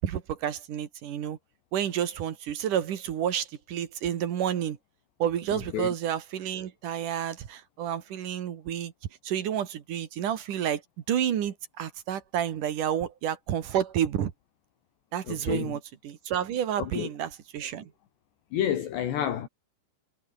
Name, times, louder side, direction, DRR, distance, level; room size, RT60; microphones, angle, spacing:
voice 1, 0.0-1.4 1.7-4.8 5.2-8.9 9.2-10.8 11.1-14.3 15.1-17.9, right 10 dB, 55° right, 2.8 m, -30 dB
voice 2, 5.5-5.9 15.3-15.8 16.8-17.1 18.5-19.5, left 10 dB, 70° left, 4.3 m, -30 dB
omnidirectional pair, 5.3 m